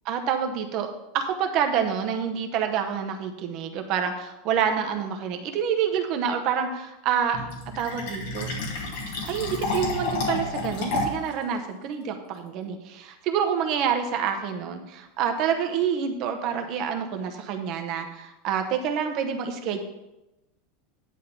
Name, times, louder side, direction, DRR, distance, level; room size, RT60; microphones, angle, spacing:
voice 1, 0.1-7.4 7.7-8.5 9.3-19.8, right 7 dB, 35° right, 5 dB, 0.8 m, -27 dB
Fill (with liquid), 7.3-11.3, left 2 dB, 65° left, 2.0 m, -30 dB
10.0 x 3.7 x 6.8 m, 0.96 s
supercardioid pair, 175°, 0 cm